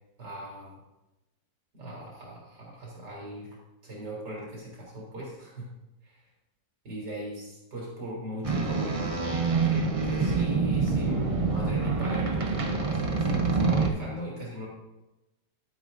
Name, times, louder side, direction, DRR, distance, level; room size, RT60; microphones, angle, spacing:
voice 1, 0.2-0.8 1.7-3.6 3.8-5.7 6.8-14.7, right 1 dB, 70° right, -5 dB, 4.0 m, -39 dB
sound 1, 8.4-13.9, right 4 dB, 35° right, 0.5 m, -26 dB
12.5 x 9.6 x 2.6 m, 0.99 s
omnidirectional pair, 1.9 m